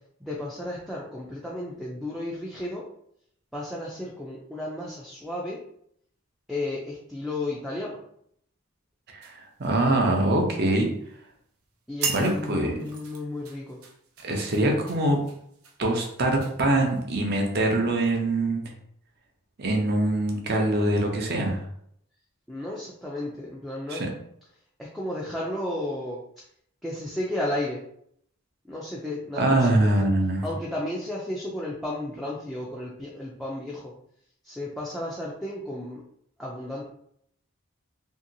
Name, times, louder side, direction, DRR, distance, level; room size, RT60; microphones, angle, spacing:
voice 1, 0.2-2.8 3.5-5.6 6.5-8.0 11.9-13.8 22.5-24.0 24.8-26.4 26.8-27.8 28.7-29.9 30.4-33.9 34.4-36.0 36.4-36.9, left 1 dB, ahead, -5 dB, 0.3 m, -33 dB
sound 1, 9.2-10.5 10.8-11.1 11.6-11.7 12.0-17.3 17.9-18.1, right 5 dB, 90° right, 0.6 m, -38 dB
voice 2, 9.6-10.9 12.1-12.7 14.2-15.2 15.8-18.6 19.6-21.6 23.9-24.1 29.4-30.4, right 1 dB, 45° right, 2 dB, 0.6 m, -23 dB
2.8 x 2.7 x 2.6 m, 0.70 s
head